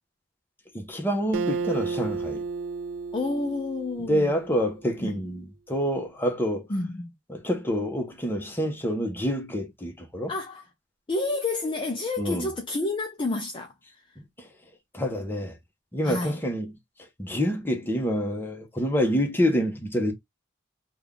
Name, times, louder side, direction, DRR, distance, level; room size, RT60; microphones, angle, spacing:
voice 1, 0.7-2.4 4.1-6.7 7.3-10.3 12.2-12.5 14.9-15.5 15.9-16.7 17.2-20.1, equal, 10° left, 0.9 m, -27 dB
Acoustic guitar, 1.3-4.8, right 4 dB, 85° right, 0.3 m, -32 dB
voice 2, 3.1-4.3 5.0-5.3 6.7-7.1 10.3-10.7 11.1-14.1 16.0-16.4, left 2 dB, 25° left, 0.5 m, -30 dB
3.4 x 2.3 x 3.6 m
head